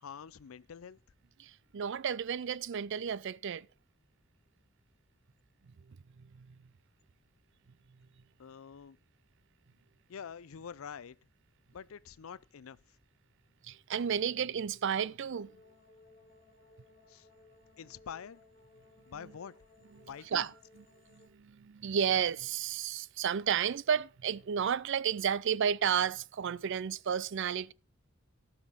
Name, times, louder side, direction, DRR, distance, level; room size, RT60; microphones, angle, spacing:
voice 1, 0.0-1.0 8.4-9.0 10.1-11.2 11.7-12.8 17.1-17.3 17.8-18.4 19.1-19.6 20.1-20.5, left 7 dB, 85° left, 0.5 m, -46 dB
voice 2, 1.4-3.7 5.9-6.6 13.6-15.6 19.2-19.3 19.9-27.7, right 8 dB, 60° right, 0.4 m, -33 dB
sound 1, 15.3-21.3, left 2 dB, 30° left, 2.3 m, -61 dB
17.5 x 5.9 x 4.0 m
head